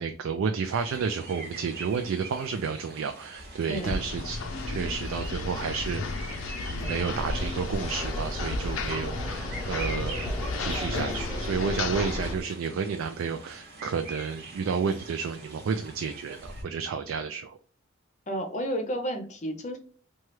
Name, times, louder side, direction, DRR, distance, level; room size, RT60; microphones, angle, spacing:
voice 1, 0.0-4.4 4.7-6.0 6.7-10.2 10.6-17.6, right 5 dB, 90° right, 7 dB, 0.3 m, -31 dB
sound 1, 0.6-16.6, right 2 dB, 50° right, 0.9 m, -44 dB
sound 2, 3.8-12.3, left 3 dB, 90° left, 0.5 m, -33 dB
sound 3, 6.8-12.4, equal, 20° right, 0.8 m, -38 dB
voice 2, 18.3-19.8, equal, 35° left, 5 dB, 0.5 m, -31 dB
3.1 x 2.3 x 3.0 m, 0.43 s
head